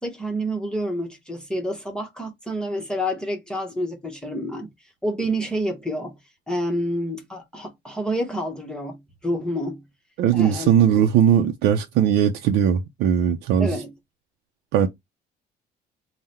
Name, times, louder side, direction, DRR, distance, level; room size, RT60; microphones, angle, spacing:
voice 1, 0.0-4.7 5.0-6.1 6.5-9.8 10.3-10.7 13.6-13.9, equal, 5° left, 1.0 m, -28 dB
voice 2, 10.2-13.8 14.7-14.9, right 9 dB, 85° right, 0.5 m, -19 dB
3.7 x 2.1 x 4.2 m
cardioid pair, 110°, 17 cm